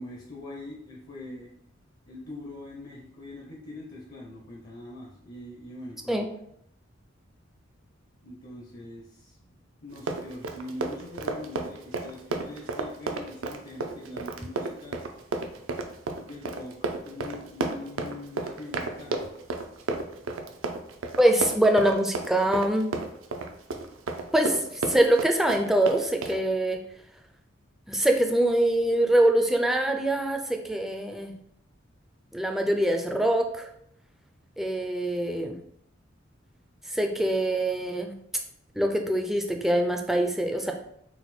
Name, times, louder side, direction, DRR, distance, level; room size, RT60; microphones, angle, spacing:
voice 1, 0.0-1.5 2.1-6.3 8.2-9.5 9.8-15.0 16.2-19.3, left 2 dB, 50° left, -2 dB, 0.6 m, -42 dB
Run, 9.9-26.4, right 3 dB, 85° right, 0.5 m, -32 dB
voice 2, 21.2-22.9 24.3-24.6 24.9-26.8 27.9-31.3 32.3-33.7 34.6-35.6 36.9-38.1 38.8-40.7, right 1 dB, ahead, 3 dB, 0.3 m, -24 dB
4.1 x 2.2 x 4.2 m, 0.72 s
head